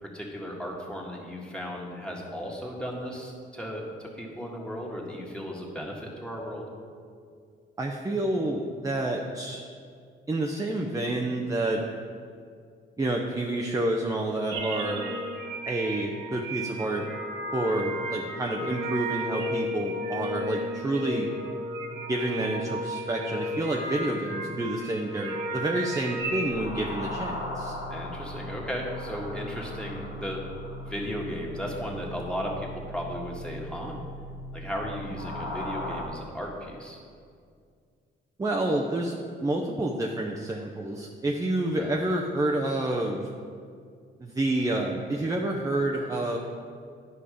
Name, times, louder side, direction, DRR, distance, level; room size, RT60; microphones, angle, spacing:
voice 1, 0.0-6.7 17.8-17.9 27.9-30.4 30.8-34.0 34.5-37.0 41.8-41.9, equal, 5° left, -2 dB, 1.7 m, -35 dB
voice 2, 7.8-9.6 10.3-11.8 13.0-15.2 15.7-17.1 17.5-21.3 22.1-27.7 38.4-43.3 44.2-46.4, right 1 dB, 15° right, -1 dB, 0.7 m, -29 dB
sound 1, 14.5-26.6, equal, 85° right, 1.2 m, -34 dB
sound 2, 26.2-36.0, left 1 dB, 90° left, 2.0 m, -38 dB
10.0 x 5.4 x 4.9 m, 2.2 s
cardioid pair, 90°, 20 cm